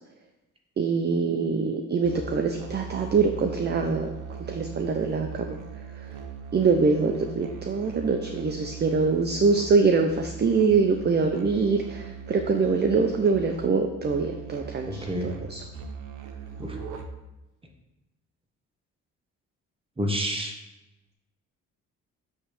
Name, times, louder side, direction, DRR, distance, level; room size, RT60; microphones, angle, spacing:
voice 1, 0.8-4.2 4.5-5.6 6.5-15.6, right 4 dB, 35° right, 5 dB, 0.7 m, -24 dB
Musical instrument, 2.0-17.4, right 6 dB, 90° right, 0.9 m, -40 dB
voice 2, 14.8-15.3 16.6-16.8 20.0-20.5, equal, 20° right, 2 dB, 1.5 m, -29 dB
8.6 x 3.4 x 6.5 m, 0.99 s
cardioid pair, 90°, 30 cm